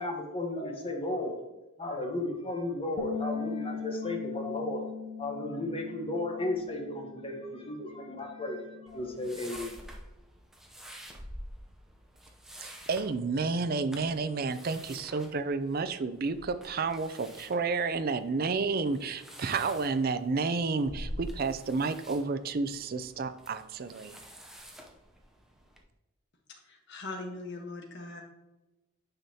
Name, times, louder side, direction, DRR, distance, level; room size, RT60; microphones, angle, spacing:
voice 1, 0.0-1.4 1.8-4.9 5.2-9.9, left 2 dB, 25° left, 1 dB, 1.1 m, -34 dB
sound 1, 3.0-9.2, left 5 dB, 80° left, 0.8 m, -40 dB
sound 2, 8.9-25.8, equal, ahead, 0.6 m, -48 dB
voice 2, 12.6-24.2, right 4 dB, 45° right, 11 dB, 0.4 m, -31 dB
voice 3, 26.6-28.2, left 2 dB, 55° left, 2 dB, 1.2 m, -40 dB
9.0 x 5.4 x 2.8 m, 1.1 s
head